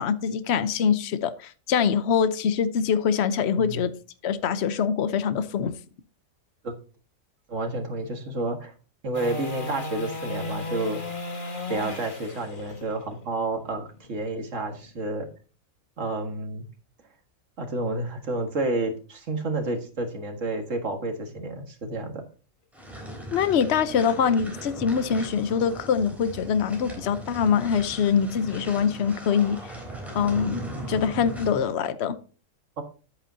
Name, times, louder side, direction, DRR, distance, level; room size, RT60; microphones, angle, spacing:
voice 1, 0.0-3.9 4.2-5.7 23.3-29.6 30.1-30.6 30.9-32.2, left 7 dB, 55° left, 12 dB, 1.0 m, -24 dB
voice 2, 7.5-8.7 9.0-11.0 11.7-15.3 16.0-16.7 17.6-22.2 32.8-32.9, right 2 dB, 65° right, 5 dB, 2.0 m, -30 dB
sound 1, 9.1-15.3 21.8-21.9, left 2 dB, 40° left, 1.6 m, -36 dB
sound 2, 22.7-31.7, right 1 dB, ahead, 3.4 m, -39 dB
10.5 x 8.7 x 2.7 m, 0.37 s
omnidirectional pair, 1.4 m